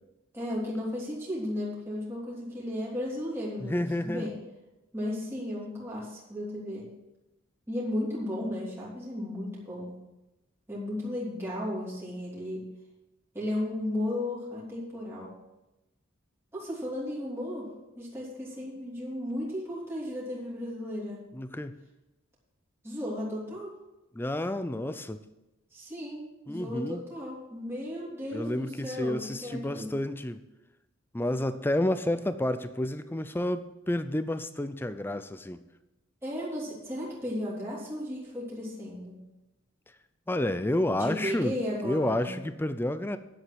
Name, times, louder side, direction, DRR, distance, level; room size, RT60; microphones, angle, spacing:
voice 1, 0.3-4.3 4.9-6.9 7.7-10.0 10.7-12.7 13.3-15.3 16.5-17.7 18.0-21.2 22.8-23.7 25.7-29.9 36.2-39.2 41.0-42.3, left 1 dB, 10° right, -6 dB, 2.9 m, -35 dB
voice 2, 3.6-4.3 21.3-21.8 24.1-25.2 26.5-27.0 28.3-30.4 31.1-35.6 40.3-41.5 41.8-43.2, left 1 dB, 10° left, 12 dB, 0.4 m, -30 dB
9.9 x 7.9 x 6.1 m, 0.98 s
head